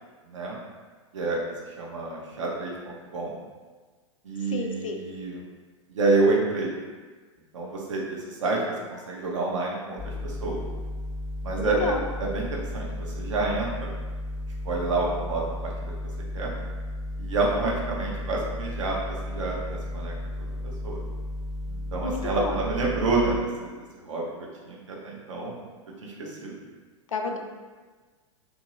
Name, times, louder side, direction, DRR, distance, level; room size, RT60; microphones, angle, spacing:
voice 1, 0.2-0.6 1.1-1.4 1.8-3.4 4.2-5.4 5.9-6.7 7.5-8.6 8.9-10.6 11.4-11.8 12.2-13.9 14.6-15.7 16.3-16.5 17.2-20.1 20.6-21.0 21.7-23.7 24.1-24.3 24.7-25.5 26.0-26.5, right 3 dB, 70° right, -3 dB, 0.8 m, -28 dB
voice 2, 4.5-5.0 11.6-12.0 22.0-22.6 27.1-27.4, left 4 dB, 80° left, 3 dB, 0.4 m, -30 dB
sound 1, 10.0-23.4, left 1 dB, ahead, 0.4 m, -34 dB
2.9 x 2.6 x 2.9 m, 1.4 s
figure-of-eight pair, 95°, 17 cm